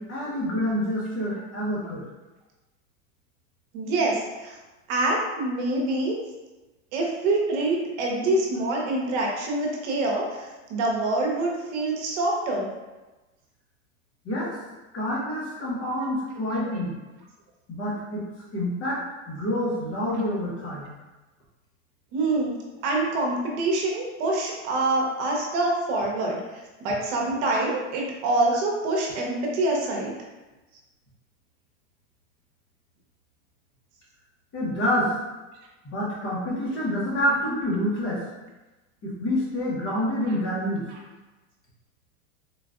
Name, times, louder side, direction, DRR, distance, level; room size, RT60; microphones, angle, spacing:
voice 1, 0.0-2.0 14.2-14.6 14.9-17.0 17.7-18.2 18.5-19.0 19.3-20.9 34.5-35.2 35.8-38.3 39.0-40.9, left 1 dB, 35° left, -5 dB, 1.1 m, -27 dB
voice 2, 3.7-4.6 4.9-6.2 6.9-12.7 16.7-16.8 22.1-22.6 22.8-30.1 40.9-41.0, right 2 dB, 65° right, -1 dB, 0.9 m, -26 dB
3.8 x 2.4 x 2.4 m, 1.1 s
supercardioid pair, 115°, 38 cm